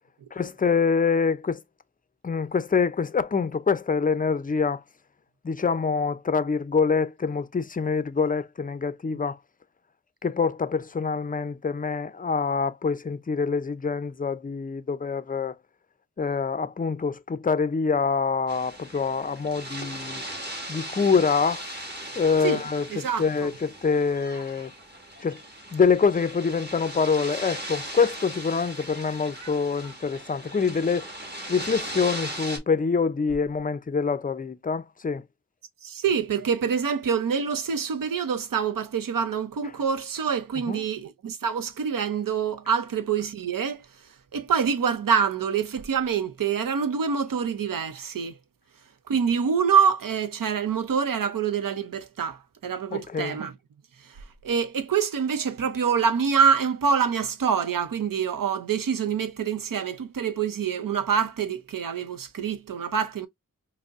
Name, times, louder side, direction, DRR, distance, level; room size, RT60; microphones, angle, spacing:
voice 1, 0.3-1.6 2.2-4.8 5.4-9.4 10.2-15.6 16.2-20.2 20.7-21.6 22.2-24.7 25.2-25.4 25.7-31.1 31.5-35.2 40.7-40.8 52.9-53.4, left 5 dB, 25° left, 0.4 m, -25 dB
sound 1, 18.5-32.6, right 1 dB, 30° right, 1.5 m, -38 dB
voice 2, 22.9-23.5 35.8-43.9 44.3-48.3 49.1-53.5 54.0-54.2 54.4-63.3, right 6 dB, 80° right, 0.6 m, -26 dB
5.1 x 2.1 x 2.4 m
wide cardioid pair, 65°, 33 cm